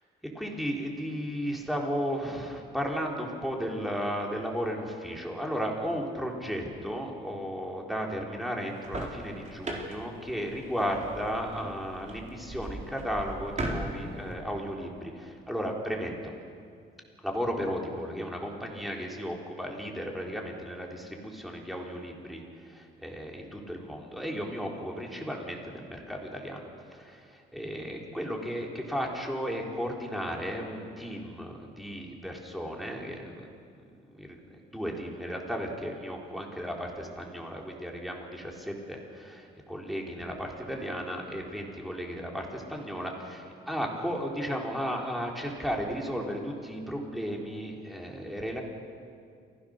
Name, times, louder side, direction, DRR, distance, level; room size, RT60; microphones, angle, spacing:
voice 1, 0.3-16.3 17.2-26.6 26.9-33.6 34.1-34.4 34.7-48.6, equal, ahead, -1 dB, 4.0 m, -34 dB
sound 1, 8.6-14.3, right 1 dB, 35° right, 4.2 m, -39 dB
28.0 x 16.0 x 6.6 m, 2.4 s
cardioid pair, 90°, 20 cm